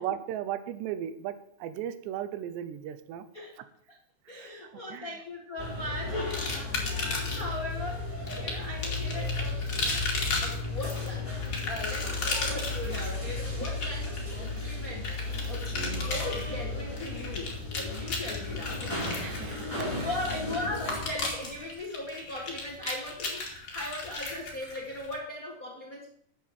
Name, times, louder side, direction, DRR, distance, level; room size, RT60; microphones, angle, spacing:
voice 1, 0.0-3.3 4.3-5.1 15.7-16.1 19.2-19.6, right 10 dB, 85° right, 12 dB, 3.0 m, -36 dB
voice 2, 4.3-6.7 7.0-8.1 8.4-9.6 10.4-11.4 11.7-15.1 15.5-18.9 19.3-26.1, left 1 dB, 55° left, -1 dB, 0.9 m, -38 dB
sound 1, 5.6-21.0, left 3 dB, 10° left, 5.0 m, -34 dB
sound 2, 6.3-7.6 8.3-25.1, left 3 dB, 30° left, 2.5 m, -35 dB
10.5 x 7.5 x 7.5 m, 0.69 s
omnidirectional pair, 4.9 m